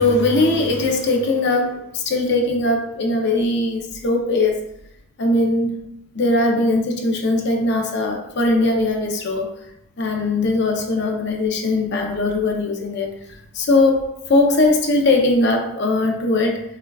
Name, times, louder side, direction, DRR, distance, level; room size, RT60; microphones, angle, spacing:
voice 1, 0.0-4.6 5.2-5.8 6.1-9.5 10.0-13.1 13.5-16.6, left 2 dB, 50° left, 2 dB, 0.6 m, -20 dB
5.5 x 2.2 x 2.3 m, 0.78 s
head